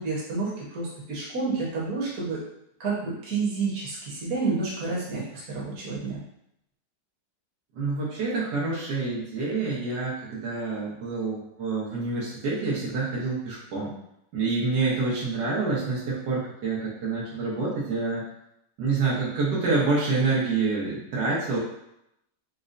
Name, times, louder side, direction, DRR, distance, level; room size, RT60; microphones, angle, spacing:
voice 1, 0.0-2.4 2.8-6.2, right 4 dB, 55° right, -6 dB, 1.4 m, -30 dB
voice 2, 7.7-13.9 14.3-18.2 18.8-21.6, right 3 dB, 80° right, -6 dB, 1.7 m, -27 dB
5.2 x 2.1 x 2.5 m, 0.80 s
omnidirectional pair, 1.9 m